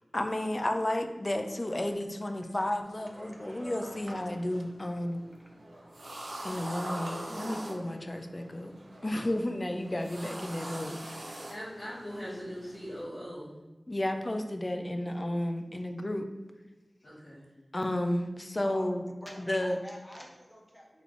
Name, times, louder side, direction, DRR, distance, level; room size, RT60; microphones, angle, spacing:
voice 1, 0.1-5.2 6.4-8.7 9.0-11.3 13.9-16.3 17.7-19.1 19.4-19.8, left 1 dB, 35° left, 6 dB, 0.4 m, -32 dB
sound 1, 2.8-13.0, right 1 dB, 80° right, 0.7 m, -43 dB
voice 2, 11.5-13.6 17.0-17.5, equal, 65° left, -11 dB, 1.2 m, -41 dB
voice 3, 19.2-21.0, equal, 10° left, -1 dB, 0.8 m, -47 dB
3.2 x 3.2 x 3.8 m, 1.2 s
wide cardioid pair, 75°, 0 cm